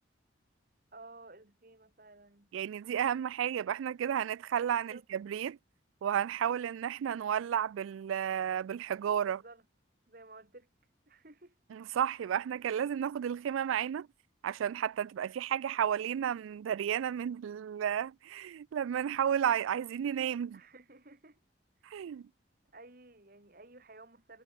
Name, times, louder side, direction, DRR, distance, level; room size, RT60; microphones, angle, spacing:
voice 1, 0.9-2.5 4.6-5.0 9.3-9.6 10.1-10.7 11.1-11.5 20.5-21.4 21.8-22.1 22.7-24.4, right 2 dB, 45° right, 2.4 m, -54 dB
voice 2, 2.5-5.6 6.0-9.4 11.7-14.1 14.4-20.6 21.8-22.3, right 9 dB, 85° right, 0.3 m, -32 dB
head